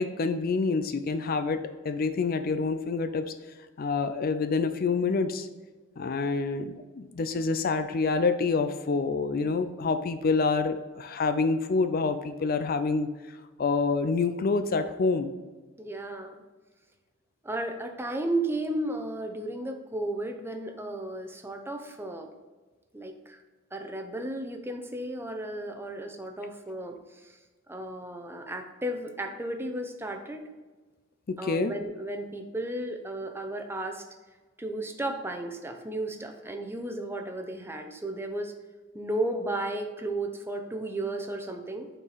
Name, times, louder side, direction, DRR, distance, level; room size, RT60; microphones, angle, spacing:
voice 1, 0.0-3.3 3.8-5.5 6.0-13.1 13.6-15.3 31.3-31.7, left 4 dB, 50° left, 10 dB, 0.4 m, -27 dB
voice 2, 15.8-16.4 17.4-22.3 22.9-23.4 23.7-27.4 27.7-30.5 31.4-34.0 34.6-38.5 38.9-41.9, right 1 dB, 10° right, 5 dB, 0.7 m, -34 dB
8.9 x 4.5 x 4.0 m, 1.3 s
head